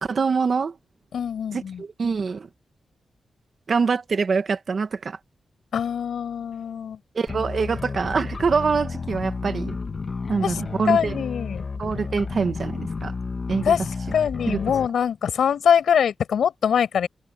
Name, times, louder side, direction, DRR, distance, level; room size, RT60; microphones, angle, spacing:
voice 1, 0.0-0.8 1.5-2.5 3.7-5.2 7.1-9.8 10.3-11.2 11.8-13.1 13.5-13.7 14.5-14.6, right 5 dB, 45° right, 1.6 m, -24 dB
voice 2, 1.1-1.8 5.7-7.0 10.4-10.6 10.9-11.6 13.6-13.9 14.1-17.1, left 8 dB, 85° left, 5.8 m, -23 dB
sound 1, 7.3-14.9, left 4 dB, 35° left, 1.4 m, -32 dB
wide cardioid pair, 155°, 0 cm